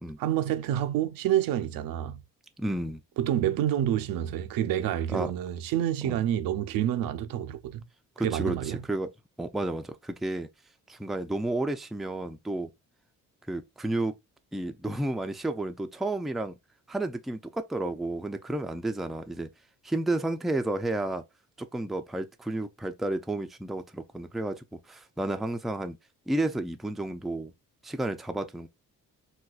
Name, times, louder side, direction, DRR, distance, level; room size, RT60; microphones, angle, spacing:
voice 1, 0.2-2.2 3.2-7.9 8.2-8.8, right 11 dB, 85° right, 0.6 m, -28 dB
voice 2, 2.6-3.0 5.1-5.3 6.0-6.2 8.2-9.1 9.4-10.5 10.9-12.7 13.5-14.2 14.5-16.6 16.9-19.5 19.8-21.2 21.6-26.0 26.3-27.5 27.8-28.7, right 2 dB, ahead, 0.3 m, -31 dB
4.0 x 2.2 x 2.3 m
cardioid pair, 80°, 33 cm